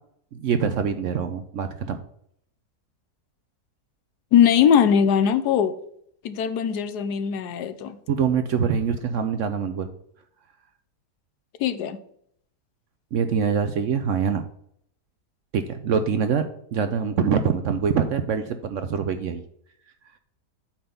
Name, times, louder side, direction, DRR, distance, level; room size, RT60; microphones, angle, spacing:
voice 1, 0.3-2.0 8.1-9.9 13.1-14.4 15.5-16.4 16.7-19.4, right 6 dB, 65° right, 9 dB, 0.8 m, -24 dB
voice 2, 4.3-5.7 6.2-8.0 11.6-12.0, left 8 dB, 80° left, 12 dB, 1.2 m, -20 dB
8.6 x 3.9 x 6.8 m, 0.69 s
omnidirectional pair, 1.7 m